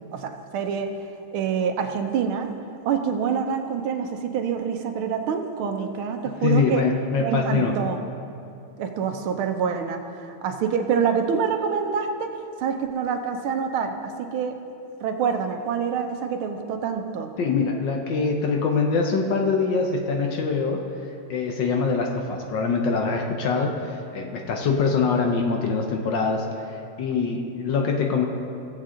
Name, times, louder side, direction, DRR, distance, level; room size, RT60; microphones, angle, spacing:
voice 1, 0.1-0.9 1.3-2.5 2.8-6.8 7.2-8.0 8.8-12.3 12.6-14.5 15.0-17.3, right 6 dB, 75° right, 5 dB, 1.5 m, -26 dB
voice 2, 6.4-7.8 17.4-20.8 21.3-28.2, left 4 dB, 65° left, 2 dB, 1.4 m, -24 dB
17.0 x 7.4 x 3.7 m, 2.6 s
omnidirectional pair, 2.4 m